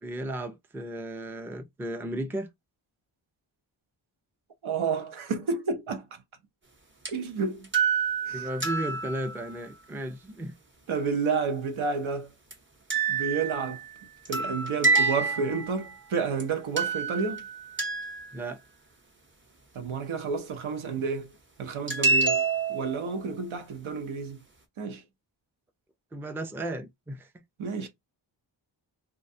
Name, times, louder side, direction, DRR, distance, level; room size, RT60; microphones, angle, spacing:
voice 1, 0.0-2.5 8.3-10.5 18.3-18.6 26.1-27.3, right 1 dB, 5° right, 0.4 m, -34 dB
voice 2, 4.6-6.0 7.1-7.7 8.3-8.5 10.9-12.3 13.1-13.8 14.3-17.4 19.7-21.3 21.6-24.4 24.8-25.0 27.6-27.9, right 5 dB, 80° right, 0.8 m, -30 dB
sound 1, 7.1-7.2 7.6-9.5 12.5-12.6 12.9-16.0 16.4-16.5 16.8-18.4 21.9-23.1, right 4 dB, 25° right, 0.7 m, -28 dB
2.4 x 2.2 x 2.6 m
wide cardioid pair, 80°, 48 cm